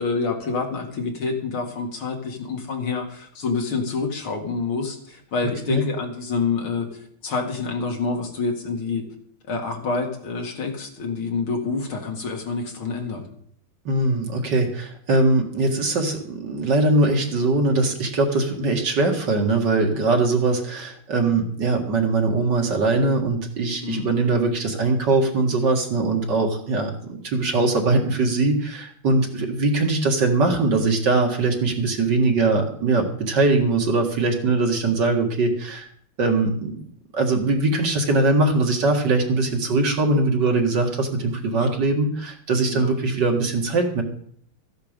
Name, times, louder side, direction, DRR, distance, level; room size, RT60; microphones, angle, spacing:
voice 1, 0.0-6.9 7.2-9.0 9.5-13.3 23.8-24.1 41.5-41.8 42.7-42.9, left 4 dB, 80° left, 2 dB, 3.0 m, -27 dB
voice 2, 13.9-35.9 36.2-36.8 37.1-44.0, right 3 dB, 60° right, 2 dB, 2.5 m, -21 dB
14.5 x 10.5 x 5.2 m, 0.63 s
omnidirectional pair, 2.2 m